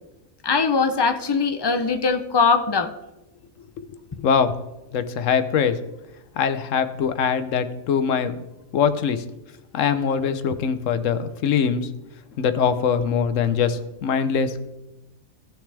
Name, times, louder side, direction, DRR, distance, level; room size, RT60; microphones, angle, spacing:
voice 1, 0.4-2.9, left 5 dB, 40° left, 8 dB, 0.3 m, -21 dB
voice 2, 4.9-5.8 6.4-8.3 8.7-9.2 9.7-11.9 12.4-14.6, left 7 dB, 75° left, 11 dB, 1.1 m, -22 dB
16.0 x 6.3 x 3.4 m, 0.98 s
omnidirectional pair, 1.4 m